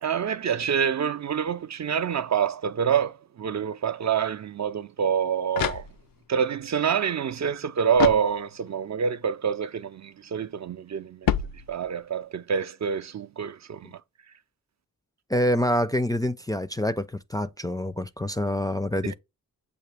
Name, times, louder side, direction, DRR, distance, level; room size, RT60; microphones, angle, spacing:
voice 1, 0.0-5.9 6.3-14.0 19.0-19.1, right 7 dB, 50° right, 0.5 m, -27 dB
sound 1, 5.1-6.4 7.9-8.8 11.2-12.2, left 10 dB, 70° left, 0.5 m, -30 dB
voice 2, 15.3-19.1, equal, 10° left, 0.4 m, -26 dB
6.7 x 2.4 x 3.3 m
cardioid pair, 50°, 36 cm